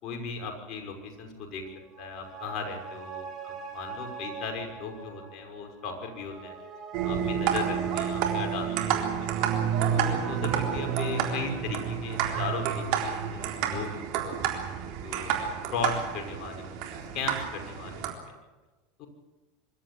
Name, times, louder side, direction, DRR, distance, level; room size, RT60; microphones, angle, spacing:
voice 1, 0.0-1.6 2.0-6.5 7.0-9.5 10.0-14.2 15.0-18.2 19.0-19.1, left 5 dB, 50° left, 3 dB, 5.9 m, -37 dB
sound 1, 1.7-14.5 14.9-15.0, right 5 dB, 35° right, 5.3 m, -44 dB
sound 2, 6.9-18.1, right 8 dB, 60° right, 3.8 m, -29 dB
24.5 x 13.0 x 10.0 m, 1.2 s
hypercardioid pair, 100°, 0 cm